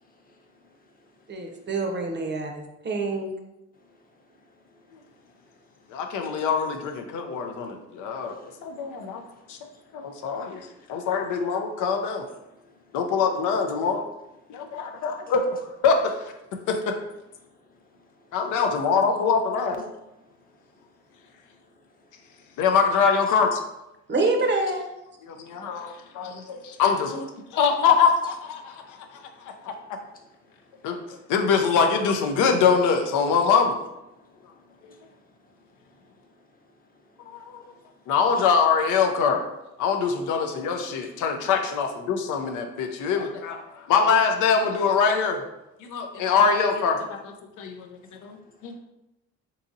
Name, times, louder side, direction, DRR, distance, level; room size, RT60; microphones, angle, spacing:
voice 1, 0.3-0.7 4.7-4.8 5.2-5.5 6.1-6.5 8.2-8.6 9.2-9.8 10.3-10.8 14.8-14.9 17.8-17.9 22.3-22.4 25.7-26.1 26.6-26.7 29.9-30.2 31.0-31.2 34.5-35.0 37.2-37.4 38.4-38.5 40.1-40.2, left 3 dB, 30° left, 0.7 m, -57 dB
voice 2, 1.3-3.3 24.1-24.9, right 3 dB, 35° right, 0.6 m, -26 dB
voice 3, 5.9-8.4 8.6-9.2 9.5-9.6 9.9-10.6 10.9-12.2 12.9-14.0 14.5-16.0 16.7-16.8 18.3-19.8 22.6-23.6 25.2-27.3 27.5-29.0 30.8-33.8 37.5-37.6 38.1-39.4 39.8-45.4 45.8-47.9 48.2-48.4 48.6-48.8, left 6 dB, 85° left, 0.5 m, -23 dB
3.8 x 2.7 x 2.6 m
cardioid pair, 90°, 30 cm